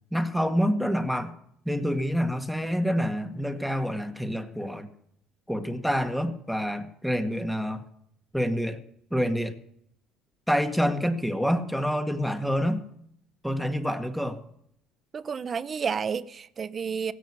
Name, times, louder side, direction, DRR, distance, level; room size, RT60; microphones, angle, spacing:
voice 1, 0.1-1.3 1.7-4.9 5.5-7.8 8.3-8.8 9.1-9.6 10.5-12.8 13.4-14.4, equal, ahead, 2.0 m, -27 dB
voice 2, 15.1-17.1, right 6 dB, 40° right, 0.9 m, -31 dB
16.5 x 8.1 x 10.0 m
supercardioid pair, 75°, 0 cm